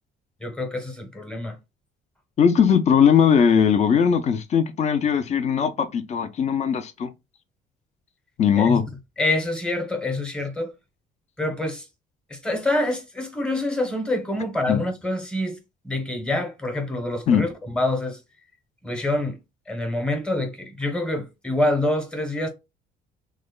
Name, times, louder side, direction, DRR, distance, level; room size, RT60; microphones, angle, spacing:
voice 1, 0.4-1.6 8.6-8.8 9.2-10.7 11.4-11.8 12.3-15.6 15.8-17.5 17.7-18.2 18.8-19.4 19.7-22.5, left 1 dB, 5° left, 0.9 m, -26 dB
voice 2, 2.4-7.1 8.4-8.9 14.7-14.8 17.3-17.4, left 7 dB, 40° left, 0.6 m, -19 dB
3.1 x 2.2 x 3.7 m
cardioid pair, 110°, 17 cm